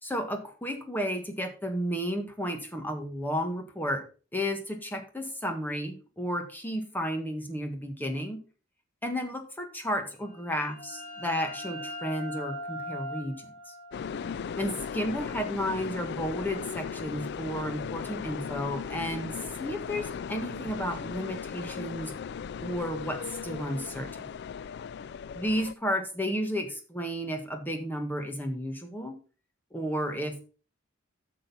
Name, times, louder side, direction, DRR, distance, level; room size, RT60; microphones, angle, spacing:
voice 1, 0.0-4.0 4.3-8.4 9.0-13.7 14.6-22.1 22.6-24.3 25.3-29.2 29.7-30.4, equal, 10° left, 4 dB, 1.5 m, -32 dB
sound 1, 10.2-15.7, equal, 40° left, 2.8 m, -41 dB
sound 2, 13.9-25.7, left 6 dB, 55° left, 0.3 m, -37 dB
8.9 x 6.5 x 5.5 m, 0.37 s
head